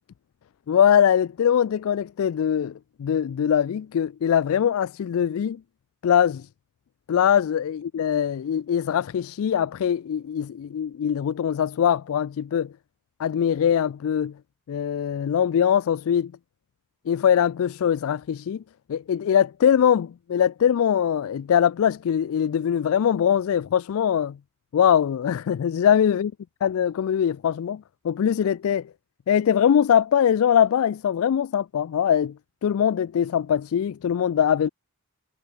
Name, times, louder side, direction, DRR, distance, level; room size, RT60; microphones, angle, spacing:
voice 1, 0.7-5.6 6.0-6.5 7.1-12.7 13.2-14.3 14.7-16.3 17.1-18.6 18.9-24.4 24.7-26.3 26.6-28.9 29.3-32.3 32.6-34.7, left 8 dB, 70° left, 0.3 m, -22 dB
head